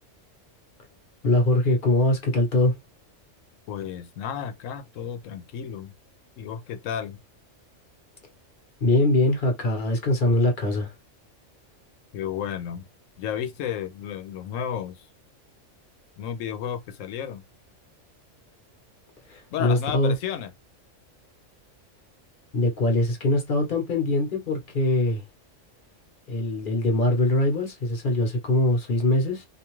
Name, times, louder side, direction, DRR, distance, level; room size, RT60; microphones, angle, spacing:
voice 1, 1.2-2.8 8.8-10.9 19.3-20.2 22.5-25.2 26.3-29.5, left 1 dB, 45° left, 1.0 m, -22 dB
voice 2, 3.7-5.9 6.4-7.2 12.1-12.8 13.2-15.1 16.2-17.4 19.5-20.5, left 9 dB, 90° left, 1.0 m, -32 dB
2.5 x 2.3 x 3.0 m
omnidirectional pair, 1.3 m